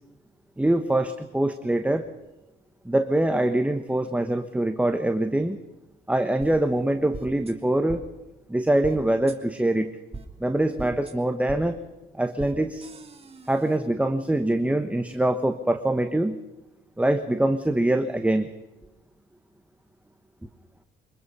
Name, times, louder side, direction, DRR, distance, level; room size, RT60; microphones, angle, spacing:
voice 1, 0.6-2.1 2.8-5.6 6.1-8.0 8.5-9.9 10.4-11.8 12.1-12.9 13.5-16.4 17.0-18.5, right 1 dB, 5° right, 7 dB, 1.2 m, -24 dB
sound 1, 6.4-6.5 7.1-7.5 7.9-8.0 8.8-9.0 9.3-9.4 10.1-10.2 10.8-11.1 11.5-11.6 12.4-12.5 12.8-13.8, right 3 dB, 30° right, 2.7 m, -39 dB
24.5 x 21.5 x 5.6 m, 1.0 s
cardioid pair, 90°, 20 cm